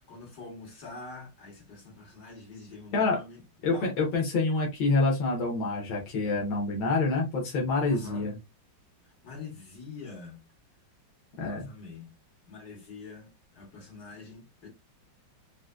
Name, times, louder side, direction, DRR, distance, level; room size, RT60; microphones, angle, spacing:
voice 1, 0.0-3.4 3.7-4.0 7.9-8.3 9.2-10.4 11.4-12.1 12.5-14.7, left 4 dB, 60° left, 2.1 m, -45 dB
voice 2, 3.6-8.4 11.4-11.7, left 3 dB, 85° left, 1.7 m, -27 dB
4.8 x 2.1 x 2.2 m
omnidirectional pair, 2.1 m